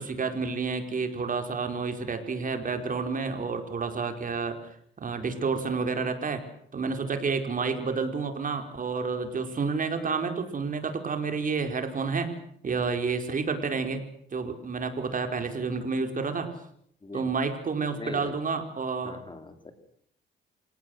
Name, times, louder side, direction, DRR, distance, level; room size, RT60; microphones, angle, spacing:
voice 1, 0.0-4.6 5.0-6.4 6.7-12.3 12.6-14.0 14.3-16.5 17.1-19.2, right 4 dB, 45° right, 7 dB, 4.8 m, -30 dB
voice 2, 17.9-18.3 19.0-19.7, left 3 dB, 25° left, 8 dB, 4.1 m, -40 dB
27.5 x 18.0 x 8.0 m, 0.67 s
cardioid pair, 90°, 20 cm